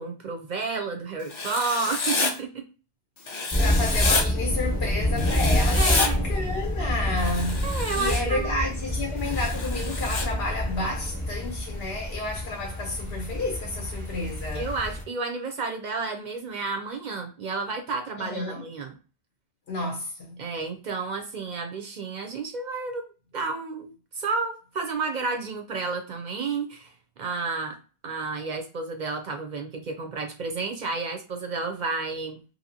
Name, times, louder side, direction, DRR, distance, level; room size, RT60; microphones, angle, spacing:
voice 1, 0.0-2.6 5.7-6.2 7.6-8.6 14.5-19.0 20.4-23.1 23.3-26.9 27.2-27.8 28.0-32.4, right 4 dB, 55° right, 0.5 m, -31 dB
Writing, 1.3-2.3 3.3-4.2 5.2-6.1 7.2-8.2 9.2-10.3, left 3 dB, 40° left, 0.4 m, -28 dB
sound 1, 3.5-15.0, left 1 dB, 20° left, 0.9 m, -28 dB
voice 2, 3.6-14.7 18.2-18.6 19.7-20.4, left 2 dB, 75° left, 0.9 m, -31 dB
2.8 x 2.7 x 2.7 m
omnidirectional pair, 1.0 m